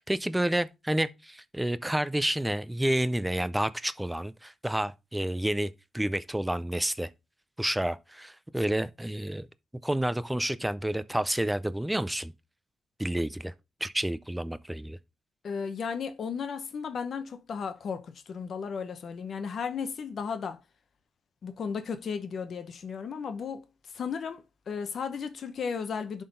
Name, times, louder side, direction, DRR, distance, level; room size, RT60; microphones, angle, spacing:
voice 1, 0.0-7.1 7.6-9.5 9.8-12.3 13.0-13.5 13.8-15.0, right 1 dB, 5° right, 0.4 m, -29 dB
voice 2, 15.4-20.6 21.4-26.2, left 6 dB, 55° left, 0.8 m, -35 dB
11.0 x 3.7 x 3.8 m
wide cardioid pair, 140°, 0 cm